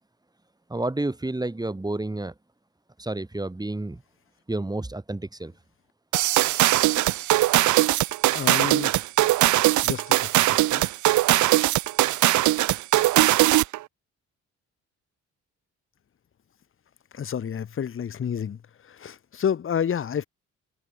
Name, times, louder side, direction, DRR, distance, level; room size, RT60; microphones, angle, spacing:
voice 1, 0.7-2.3 3.0-4.0 4.5-5.6, right 2 dB, 15° right, 3.3 m, -30 dB
sound 1, 6.1-13.8, right 16 dB, 75° right, 0.7 m, -20 dB
voice 2, 8.3-9.0 9.8-10.9 17.1-20.3, left 8 dB, 45° left, 1.4 m, -30 dB
cardioid pair, 90°, 30 cm